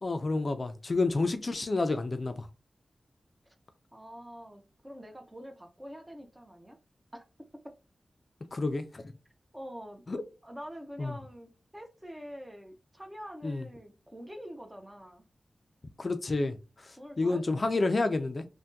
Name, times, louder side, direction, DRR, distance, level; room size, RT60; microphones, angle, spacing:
voice 1, 0.0-2.5 8.5-9.1 10.1-10.2 11.0-11.2 13.4-13.7 16.0-16.6 16.8-18.5, left 3 dB, 45° left, 0.4 m, -29 dB
voice 2, 3.9-6.8 7.1-7.2 7.5-7.7 9.5-10.0 10.4-15.2 17.0-18.0, equal, 15° right, 0.7 m, -46 dB
3.3 x 2.2 x 2.6 m
wide cardioid pair, 80°, 0 cm